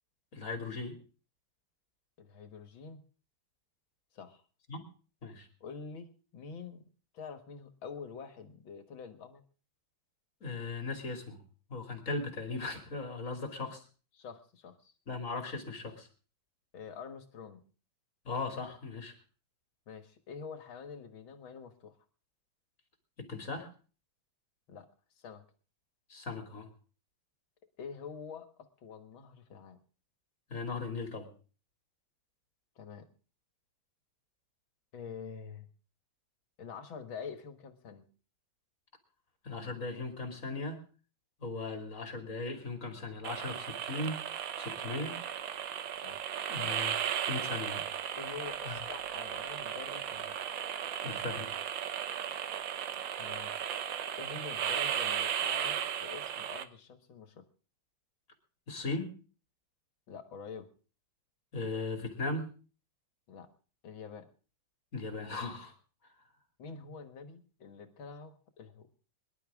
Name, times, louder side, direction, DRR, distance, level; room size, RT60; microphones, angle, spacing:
voice 1, 0.3-1.0 4.7-4.8 5.2-5.5 10.4-11.4 11.7-13.8 15.1-16.1 18.2-19.1 23.2-23.7 26.1-26.7 30.5-31.3 39.4-40.8 41.4-44.2 44.6-45.2 46.5-47.8 48.6-48.7 51.0-51.5 58.7-59.2 61.5-62.5 64.9-65.7, left 3 dB, 40° left, 4 dB, 3.0 m, -38 dB
voice 2, 2.2-3.0 4.1-4.5 5.6-6.9 7.1-9.4 14.1-14.9 16.7-17.6 19.9-22.0 24.7-24.9 25.2-25.5 27.8-29.8 32.8-33.1 34.9-35.7 36.6-38.1 46.0-46.3 48.2-50.4 53.2-53.6 54.2-57.4 60.1-60.7 63.3-63.5 63.8-64.3 66.6-68.9, left 5 dB, 80° left, 9 dB, 2.4 m, -46 dB
sound 1, 43.2-56.6, right 9 dB, 75° right, 1.7 m, -36 dB
23.5 x 11.5 x 3.6 m, 0.38 s
omnidirectional pair, 2.1 m